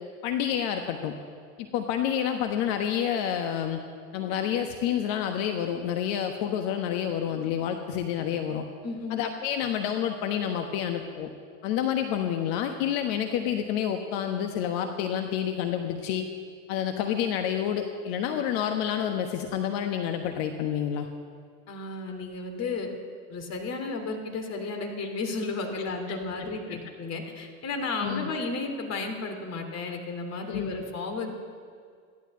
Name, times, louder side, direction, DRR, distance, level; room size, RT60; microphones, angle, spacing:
voice 1, 0.2-1.1 1.6-3.8 4.1-8.7 9.1-11.3 11.6-16.3 16.7-21.1 26.1-26.2 28.0-28.3 30.5-30.7, left 9 dB, 55° left, 5 dB, 1.3 m, -29 dB
voice 2, 8.8-9.2 21.7-22.9 23.3-31.3, left 3 dB, 40° left, 4 dB, 3.1 m, -33 dB
14.5 x 11.5 x 7.7 m, 2.1 s
hypercardioid pair, 85°, 41 cm